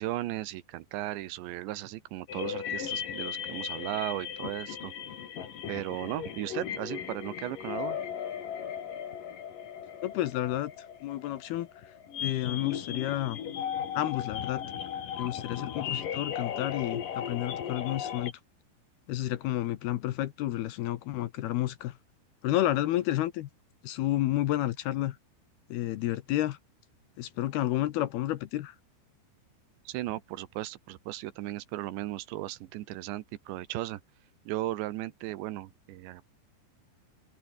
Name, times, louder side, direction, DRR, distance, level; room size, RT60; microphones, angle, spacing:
voice 1, 0.0-4.9 5.7-8.0 29.9-34.0 34.5-36.2, right 15 dB, 80° right, 3.4 m, -36 dB
sound 1, 2.3-18.3, left 9 dB, 55° left, 3.7 m, -37 dB
voice 2, 10.0-10.7 11.0-11.7 12.2-13.4 13.9-14.6 15.2-18.3 19.1-22.0 22.4-23.5 23.8-25.2 25.7-26.6 27.2-28.8, left 14 dB, 75° left, 2.7 m, -30 dB
open air
omnidirectional pair, 5.2 m